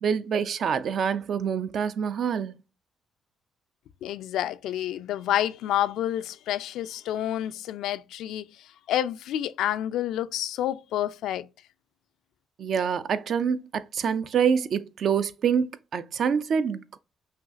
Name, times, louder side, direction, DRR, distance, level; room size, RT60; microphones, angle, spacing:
voice 1, 0.0-2.6 12.6-15.7 15.9-17.0, right 7 dB, 60° right, 0.4 m, -26 dB
voice 2, 4.0-8.5 8.9-11.5, left 12 dB, 85° left, 0.3 m, -29 dB
5.6 x 2.4 x 2.6 m
cardioid pair, 90°, 0 cm